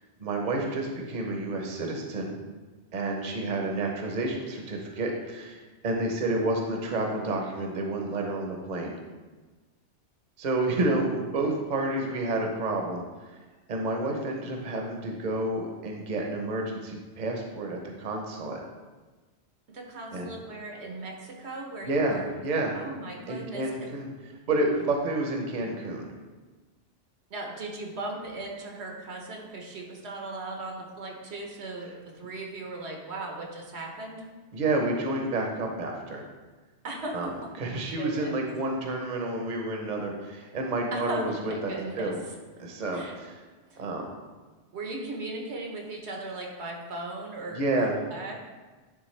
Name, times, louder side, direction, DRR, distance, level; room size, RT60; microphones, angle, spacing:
voice 1, 0.2-2.3 2.9-9.0 10.4-13.0 13.7-18.6 20.1-20.3 21.8-22.8 23.3-24.1 24.5-26.1 34.5-36.2 37.1-37.3 37.6-41.3 41.6-42.2 42.6-43.4 43.8-44.0 47.5-48.0, right 2 dB, 45° right, 1 dB, 0.8 m, -29 dB
voice 2, 19.7-22.3 22.7-23.7 27.3-34.2 36.8-37.5 38.0-38.3 40.9-42.1 42.9-43.1 43.7-43.8 44.7-48.4, right 2 dB, 80° right, 0 dB, 1.3 m, -37 dB
9.8 x 3.4 x 3.2 m, 1.3 s
omnidirectional pair, 1.1 m